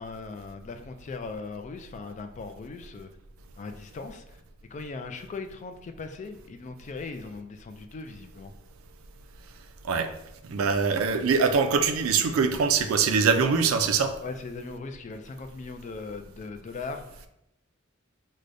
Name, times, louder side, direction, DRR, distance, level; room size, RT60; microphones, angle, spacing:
voice 1, 0.0-3.1 3.6-4.4 4.7-8.5 14.2-17.3, left 4 dB, 35° left, 7 dB, 0.3 m, -39 dB
voice 2, 10.5-14.1, right 5 dB, 70° right, 7 dB, 0.3 m, -23 dB
4.8 x 2.2 x 2.5 m, 0.83 s
head